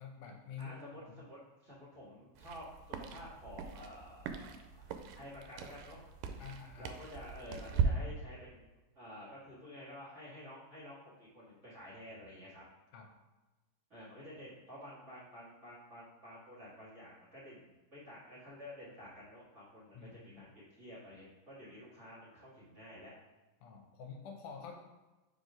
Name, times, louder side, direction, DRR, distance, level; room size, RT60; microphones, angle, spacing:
voice 1, 0.0-1.2 6.4-6.9 12.9-13.1 20.0-20.4 23.6-24.8, left 6 dB, 80° left, 2 dB, 2.0 m, -48 dB
voice 2, 0.6-2.7 3.0-6.0 6.8-8.6 8.9-12.6 13.9-23.1, left 1 dB, 35° right, -10 dB, 1.3 m, -51 dB
sound 1, 2.4-7.9, right 8 dB, 90° right, 2.2 m, -40 dB
4.8 x 3.9 x 4.9 m, 1.1 s
omnidirectional pair, 3.7 m